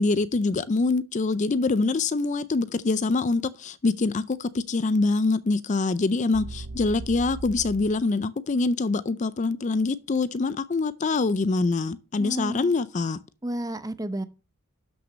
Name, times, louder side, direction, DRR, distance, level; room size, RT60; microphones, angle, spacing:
voice 1, 0.0-13.2, left 3 dB, 35° left, 0.4 m, -25 dB
sound 1, 6.3-8.0, right 2 dB, 75° right, 0.7 m, -38 dB
voice 2, 12.2-12.7 13.4-14.2, right 1 dB, 15° right, 0.7 m, -31 dB
12.5 x 6.0 x 5.2 m
head